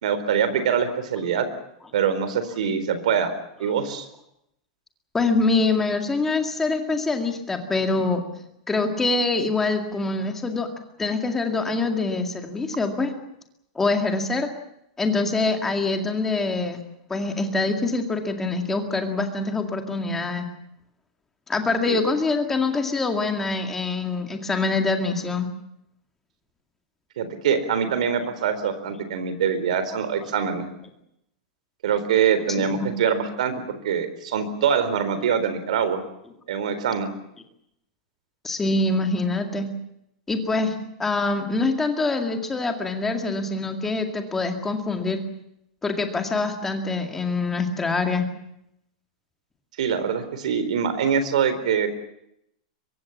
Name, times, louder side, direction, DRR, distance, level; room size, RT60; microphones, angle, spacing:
voice 1, 0.0-1.5 1.9-3.3 3.6-4.1 21.9-22.0 27.2-30.7 31.8-36.0 36.5-37.1 49.8-51.9, right 7 dB, 65° right, 11 dB, 4.2 m, -24 dB
voice 2, 5.1-8.2 8.7-10.7 11.0-13.1 13.8-14.5 15.0-16.8 17.1-20.5 21.5-25.5 32.6-32.9 38.4-39.7 40.3-45.2 45.8-48.3, left 3 dB, 5° left, 5 dB, 2.1 m, -24 dB
24.0 x 22.0 x 7.3 m, 0.78 s
supercardioid pair, 180°, 4 cm